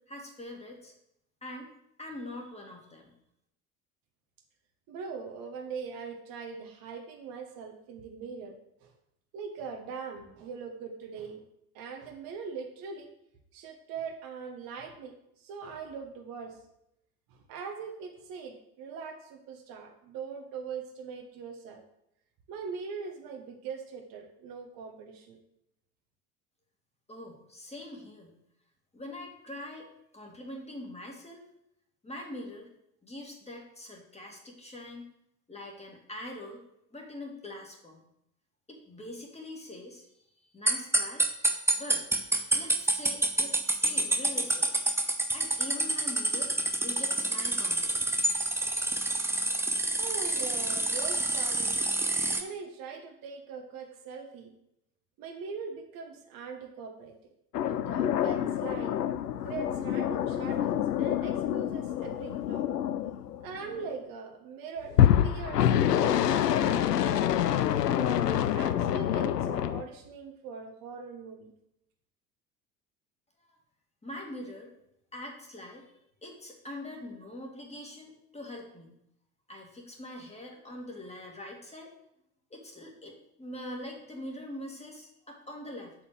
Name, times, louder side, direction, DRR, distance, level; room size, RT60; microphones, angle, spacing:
voice 1, 0.1-0.9 1.4-1.7 2.0-3.1 27.1-28.4 28.9-31.4 32.0-32.7 33.0-35.0 35.5-36.6 36.9-38.0 38.7-40.1 40.5-42.0 42.5-44.9 45.3-48.3 73.4-73.6 74.0-74.7 75.1-75.9 76.2-78.9 79.5-81.9 82.5-86.0, left 1 dB, 15° left, 0 dB, 2.1 m, -43 dB
voice 2, 4.9-8.5 8.8-8.9 9.3-11.4 11.7-13.1 13.5-16.6 17.3-21.8 22.5-25.4 50.0-51.8 52.4-54.5 55.2-57.1 57.6-58.9 59.4-62.7 63.4-67.2 67.9-71.5, right 5 dB, 45° right, 3 dB, 1.3 m, -41 dB
sound 1, 40.7-52.4, right 2 dB, 5° right, 0.8 m, -28 dB
sound 2, 57.5-63.9 64.9-69.8, left 10 dB, 80° left, 0.6 m, -27 dB
7.6 x 4.3 x 6.4 m, 0.79 s
figure-of-eight pair, 65°, 47 cm